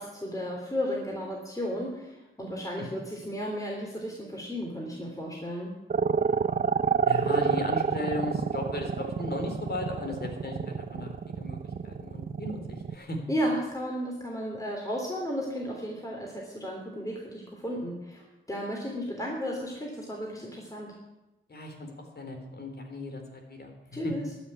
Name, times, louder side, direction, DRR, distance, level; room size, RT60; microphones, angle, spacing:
voice 1, 0.0-5.7 13.3-20.9 23.9-24.3, equal, 15° left, -1 dB, 3.3 m, -34 dB
sound 1, 5.9-12.9, right 6 dB, 45° right, 0.7 m, -28 dB
voice 2, 7.1-13.2 21.5-24.1, left 2 dB, 50° left, 3 dB, 3.7 m, -36 dB
12.5 x 6.6 x 9.8 m, 1.0 s
supercardioid pair, 45°, 21 cm